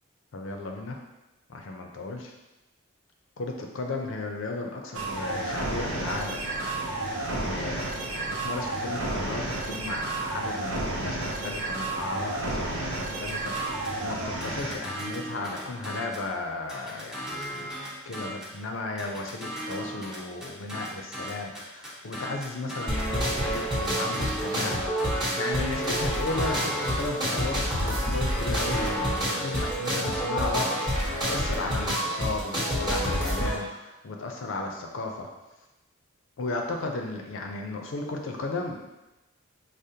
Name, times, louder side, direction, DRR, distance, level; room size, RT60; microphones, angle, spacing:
voice 1, 0.3-1.0 1.5-2.3 3.4-17.8 18.0-30.8 31.2-35.3 36.4-38.9, left 2 dB, 70° left, 3 dB, 0.5 m, -35 dB
sound 1, 4.9-14.8, right 2 dB, 85° right, 0.6 m, -31 dB
sound 2, 13.3-14.0 14.4-16.3 16.7-18.6 19.0-23.1 23.5-25.4 25.8-27.7 28.1-31.4, equal, 5° right, 0.5 m, -37 dB
sound 3, 22.9-33.6, equal, 20° right, 0.9 m, -28 dB
4.9 x 2.0 x 2.7 m, 1.0 s
head